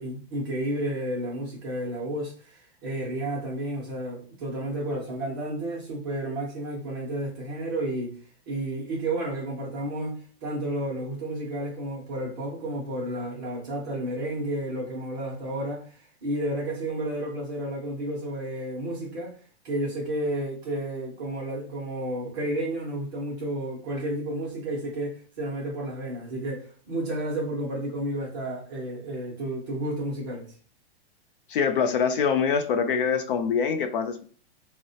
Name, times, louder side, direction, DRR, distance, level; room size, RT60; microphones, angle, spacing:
voice 1, 0.0-8.1 8.5-19.3 19.6-30.5, right 1 dB, 20° right, 0.4 m, -31 dB
voice 2, 31.5-34.2, left 6 dB, 55° left, 0.4 m, -24 dB
4.0 x 2.1 x 2.6 m
supercardioid pair, 175°, 33 cm